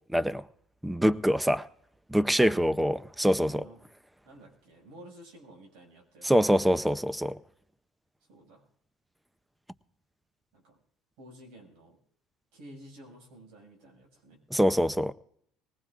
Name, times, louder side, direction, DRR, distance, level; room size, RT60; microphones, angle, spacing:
voice 1, 0.1-0.4 0.8-1.7 2.1-3.6 6.2-7.4 14.5-15.1, equal, 5° right, 0.5 m, -24 dB
voice 2, 3.5-3.8 4.2-6.5 8.3-8.6 10.5-10.8 11.2-12.0 12.5-14.4, right 1 dB, 75° right, 6.0 m, -51 dB
21.0 x 19.0 x 2.5 m
supercardioid pair, 110°, 0 cm